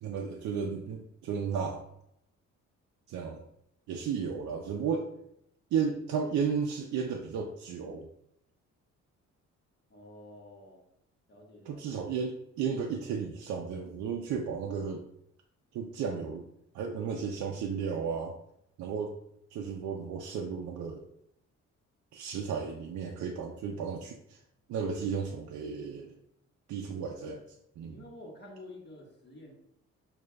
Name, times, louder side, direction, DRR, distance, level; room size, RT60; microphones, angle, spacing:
voice 1, 0.0-1.9 3.1-3.4 3.9-5.1 5.7-8.1 11.7-15.0 15.7-16.5 16.7-18.3 18.8-19.1 19.5-21.0 22.1-24.4 24.7-26.1 26.7-27.4 27.8-28.0, right 6 dB, 70° right, 1 dB, 0.5 m, -34 dB
voice 2, 9.9-10.8 11.3-11.8 27.8-29.5, left 1 dB, 35° left, -2 dB, 1.3 m, -49 dB
6.2 x 2.4 x 2.2 m, 0.77 s
cardioid pair, 90°, 30 cm